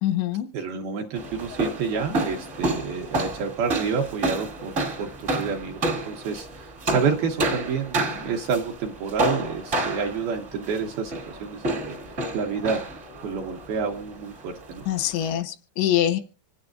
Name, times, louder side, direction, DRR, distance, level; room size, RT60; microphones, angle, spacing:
voice 1, 0.0-0.5 14.9-16.2, left 11 dB, 90° left, 9 dB, 3.2 m, -24 dB
voice 2, 0.5-4.7 5.0-12.8 13.2-14.8, right 5 dB, 75° right, 2 dB, 2.3 m, -29 dB
sound 1, 1.1-15.4, right 2 dB, 45° right, 0.9 m, -30 dB
26.0 x 9.8 x 2.5 m, 0.35 s
omnidirectional pair, 5.3 m